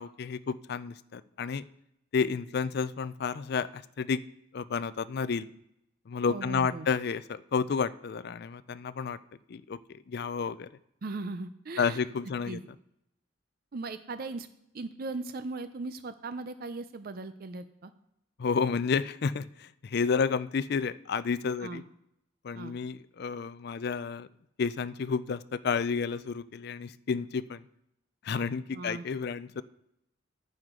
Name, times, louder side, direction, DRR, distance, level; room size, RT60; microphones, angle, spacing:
voice 1, 0.0-1.6 2.1-4.2 4.5-5.5 6.1-9.2 9.5-9.8 10.1-10.7 11.8-12.6 18.4-21.8 22.4-24.3 24.6-27.6 28.2-29.6, left 5 dB, 55° left, 15 dB, 0.4 m, -31 dB
voice 2, 6.3-6.9 11.0-12.0 12.5-12.6 13.7-14.5 14.7-17.9 21.6-21.8 22.5-22.8 28.7-29.0, right 3 dB, 50° right, 11 dB, 0.5 m, -38 dB
11.0 x 9.5 x 3.8 m, 0.79 s
head